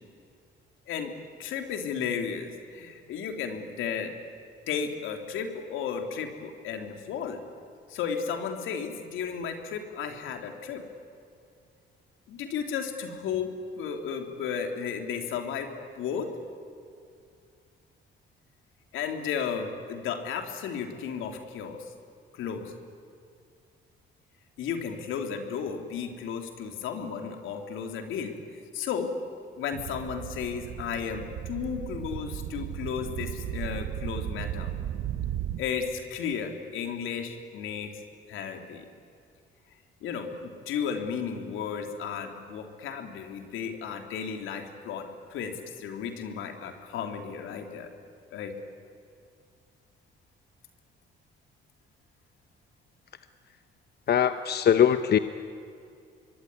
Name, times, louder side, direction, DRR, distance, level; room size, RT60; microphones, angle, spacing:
voice 1, 1.4-4.1 4.7-7.4 7.9-10.8 12.3-15.7 15.9-16.3 18.9-21.8 22.3-22.6 24.6-28.3 28.7-29.1 29.6-34.7 35.6-38.0 38.3-38.8 40.0-47.9 48.3-48.5, left 7 dB, 90° left, 5 dB, 3.2 m, -34 dB
sound 1, 29.7-35.6, right 11 dB, 80° right, 1.2 m, -35 dB
voice 2, 54.1-55.2, left 9 dB, 55° left, 10 dB, 1.0 m, -21 dB
25.5 x 23.0 x 9.9 m, 2.4 s
cardioid pair, 90°, 20 cm